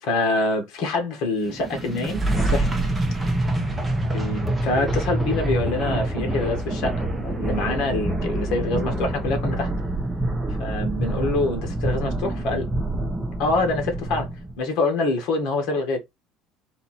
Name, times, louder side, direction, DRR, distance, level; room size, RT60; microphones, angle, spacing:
voice 1, 0.0-2.7 4.1-9.7 10.6-12.6 13.4-14.3 14.6-16.0, left 2 dB, 55° left, 1.7 m, -25 dB
sound 1, 1.4-14.5, right 1 dB, 5° right, 0.9 m, -26 dB
4.1 x 2.8 x 4.2 m
cardioid pair, 165°, 0 cm